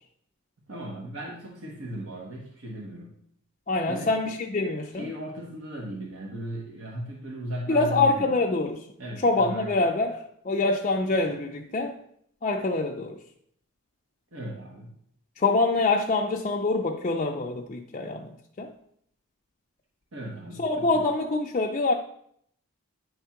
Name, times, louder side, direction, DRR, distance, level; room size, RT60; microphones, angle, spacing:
voice 1, 0.7-3.1 3.9-4.1 4.9-8.4 9.0-9.9 14.3-14.9 20.1-21.0, right 1 dB, 65° right, 1.3 m, -37 dB
voice 2, 3.7-5.1 7.7-8.8 9.2-11.9 12.4-13.2 15.4-18.7 20.6-21.9, left 3 dB, 30° left, 0.4 m, -25 dB
9.4 x 3.6 x 5.8 m
head